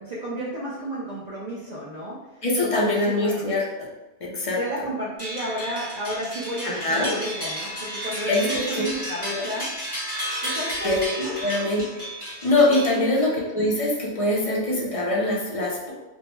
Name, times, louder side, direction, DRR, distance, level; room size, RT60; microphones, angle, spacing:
voice 1, 0.0-3.5 4.3-9.7 10.0-10.1 10.4-11.4 12.9-13.1, right 1 dB, 70° right, -6 dB, 0.4 m, -32 dB
voice 2, 2.4-3.6 4.3-4.6 6.6-7.1 8.3-8.8 9.3-9.4 10.8-15.9, left 2 dB, 50° left, -3 dB, 0.4 m, -23 dB
sound 1, 5.2-13.4, equal, 20° right, 1.1 m, -32 dB
2.7 x 2.1 x 2.9 m, 1.1 s
omnidirectional pair, 1.2 m